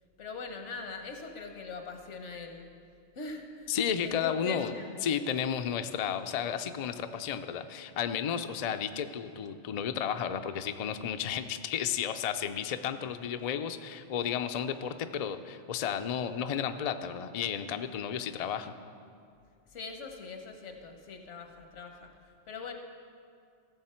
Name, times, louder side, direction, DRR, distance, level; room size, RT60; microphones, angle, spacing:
voice 1, 0.2-2.7 3.1-3.7 4.0-5.0 19.7-22.1 22.5-22.7, left 4 dB, 80° left, 4 dB, 1.3 m, -41 dB
voice 2, 3.7-4.7 5.0-18.7, left 8 dB, 60° left, 9 dB, 0.4 m, -33 dB
16.0 x 7.1 x 4.4 m, 2.3 s
omnidirectional pair, 1.2 m